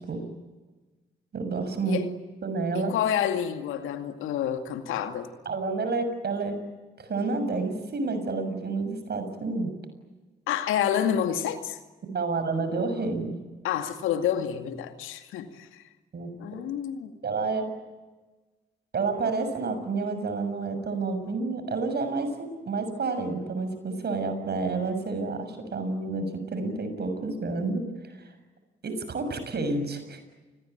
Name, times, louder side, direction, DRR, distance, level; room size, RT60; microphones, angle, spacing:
voice 1, 1.3-2.0 2.4-2.9 5.4-6.5 7.0-9.7 12.1-13.3 16.1-16.3 17.2-17.6 18.9-28.3 28.8-30.2, right 3 dB, 50° right, 6.8 m, -29 dB
voice 2, 2.7-5.3 10.5-11.8 13.6-15.8 16.4-17.1, left 9 dB, 75° left, 2.3 m, -28 dB
29.5 x 20.5 x 9.3 m
hypercardioid pair, 40°, 21 cm